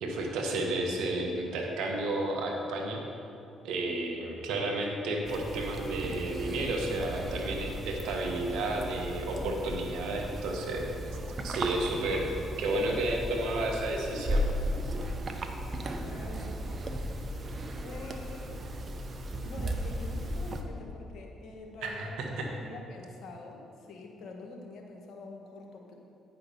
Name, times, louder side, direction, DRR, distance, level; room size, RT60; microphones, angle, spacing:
voice 1, 0.0-3.0 3.6-10.9 11.4-12.3 12.6-14.5 21.8-22.5, right 2 dB, 75° right, 1 dB, 1.2 m, -32 dB
voice 2, 4.0-4.4 15.7-16.6 17.8-18.6 19.4-25.9, left 3 dB, 65° left, 1 dB, 1.4 m, -46 dB
sound 1, 5.2-20.6, equal, 45° right, 0.8 m, -36 dB
9.9 x 5.8 x 5.4 m, 2.7 s
hypercardioid pair, 55°, 0 cm